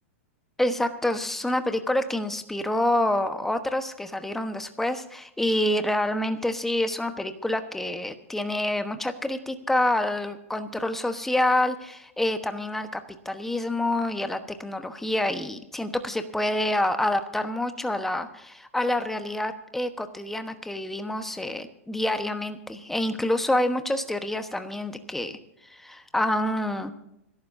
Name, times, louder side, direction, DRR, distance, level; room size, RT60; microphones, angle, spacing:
voice 1, 0.6-25.4 25.7-26.9, left 1 dB, 5° left, 8 dB, 1.1 m, -27 dB
25.5 x 12.0 x 2.7 m, 0.81 s
hypercardioid pair, 130°, 7 cm